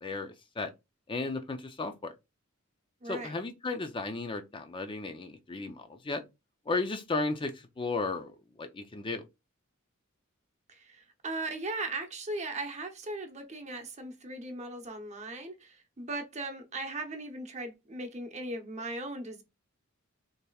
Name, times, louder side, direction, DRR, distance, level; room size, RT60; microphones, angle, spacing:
voice 1, 0.0-0.7 1.1-2.1 3.1-6.2 6.7-8.3 8.6-9.2, left 3 dB, 25° left, 0.5 m, -34 dB
voice 2, 3.0-3.4 10.7-19.4, right 2 dB, 35° right, 0.8 m, -38 dB
6.5 x 2.9 x 2.3 m
head